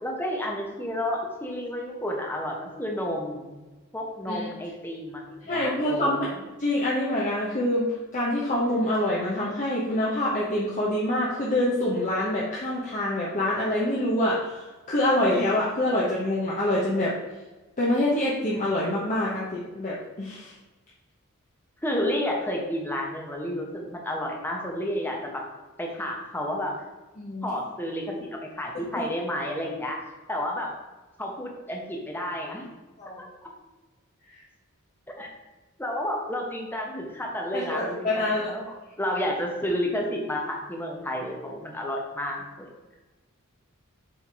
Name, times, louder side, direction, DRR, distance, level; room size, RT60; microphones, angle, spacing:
voice 1, 0.0-3.6 3.9-6.2 21.8-25.4 25.8-26.7 27.4-30.7 31.2-32.6 33.2-33.3 35.2-35.3 35.8-42.7, left 1 dB, 10° left, -1 dB, 1.0 m, -31 dB
voice 2, 5.5-6.3 6.6-7.9 8.1-17.1 17.8-20.5 27.2-27.5 33.0-33.2 37.5-38.5, left 1 dB, 35° left, -6 dB, 1.0 m, -26 dB
7.1 x 3.5 x 4.7 m, 1.2 s
head